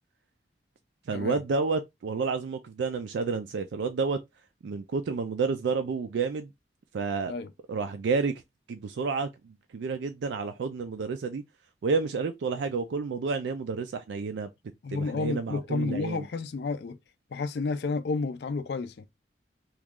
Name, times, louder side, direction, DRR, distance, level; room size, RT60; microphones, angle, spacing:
voice 1, 1.1-4.2 4.6-6.5 6.9-7.3 7.7-8.3 8.7-11.4 11.8-14.5 14.9-16.3, right 4 dB, 75° right, 0.4 m, -30 dB
voice 2, 14.8-17.0 17.3-19.1, left 4 dB, 60° left, 0.4 m, -31 dB
3.0 x 2.3 x 3.6 m
head